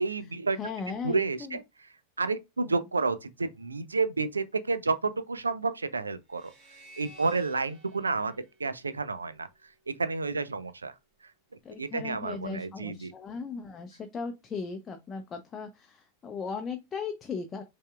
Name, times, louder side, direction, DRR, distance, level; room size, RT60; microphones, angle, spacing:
voice 1, 0.0-0.6 1.0-1.6 2.2-6.5 7.0-9.5 9.9-10.9 11.8-13.1, right 4 dB, 75° right, 0.4 m, -30 dB
voice 2, 0.6-1.6 11.6-17.6, left 5 dB, 20° left, 0.6 m, -37 dB
sound 1, 6.3-9.6, equal, 30° right, 2.4 m, -54 dB
5.4 x 3.5 x 2.3 m
figure-of-eight pair, 90°, 0 cm